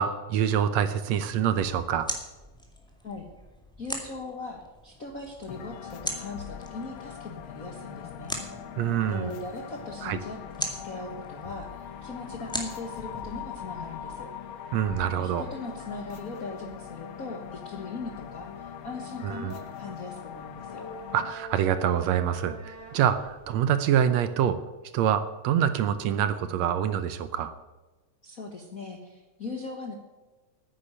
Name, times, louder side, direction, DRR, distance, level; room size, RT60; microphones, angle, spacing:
voice 1, 0.0-2.1 8.8-9.3 10.0-10.2 14.7-15.5 19.2-19.5 21.1-24.6 24.9-27.5, right 9 dB, 75° right, 12 dB, 1.8 m, -26 dB
sound 1, 1.4-14.2, equal, ahead, 1.4 m, -41 dB
voice 2, 3.8-8.4 9.1-14.3 15.0-20.9 28.2-29.9, left 3 dB, 50° left, 2 dB, 1.1 m, -39 dB
sound 2, 5.4-23.6, left 2 dB, 25° right, 2.8 m, -50 dB
sound 3, 5.5-21.3, left 9 dB, 85° left, 1.1 m, -42 dB
9.9 x 9.6 x 9.9 m, 1.2 s
omnidirectional pair, 3.4 m